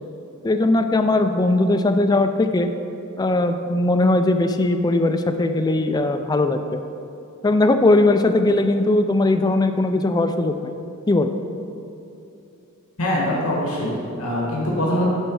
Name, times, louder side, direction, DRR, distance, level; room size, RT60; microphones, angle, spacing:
voice 1, 0.4-2.7 3.2-6.6 7.4-10.8 11.1-11.3, left 2 dB, 20° left, 7 dB, 0.3 m, -19 dB
voice 2, 13.0-15.1, left 1 dB, 75° left, -4 dB, 1.6 m, -23 dB
11.0 x 3.9 x 4.7 m, 2.8 s
head